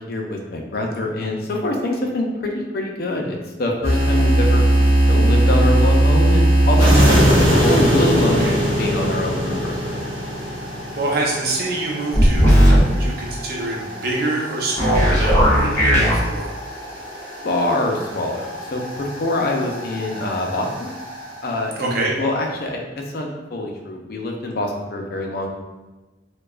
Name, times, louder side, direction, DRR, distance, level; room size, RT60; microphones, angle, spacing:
voice 1, 0.0-4.6 5.1-10.0 17.4-20.9 21.4-25.5, left 1 dB, 55° left, 1 dB, 0.5 m, -25 dB
sound 1, 3.8-21.6, right 1 dB, 30° right, 1.3 m, -20 dB
voice 2, 11.0-16.5 21.8-22.1, right 2 dB, 55° right, -2 dB, 0.7 m, -25 dB
sound 2, 12.1-12.8 14.8-16.1, equal, 15° left, 1.3 m, -14 dB
4.6 x 2.3 x 2.3 m, 1.2 s
head